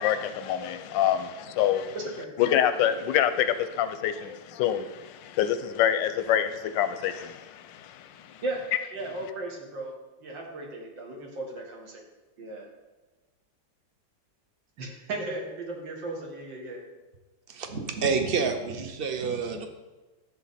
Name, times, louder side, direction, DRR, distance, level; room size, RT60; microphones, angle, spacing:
voice 1, 0.0-2.0 2.4-8.4, left 10 dB, 90° left, 10 dB, 1.3 m, -26 dB
voice 2, 1.9-2.3 8.4-8.6 8.9-9.9 10.2-12.0 12.4-12.7 14.8-16.8, right 2 dB, 85° right, 0 dB, 2.4 m, -36 dB
voice 3, 17.5-19.7, right 5 dB, 45° right, 6 dB, 0.8 m, -28 dB
11.5 x 7.4 x 4.2 m, 1.2 s
omnidirectional pair, 2.0 m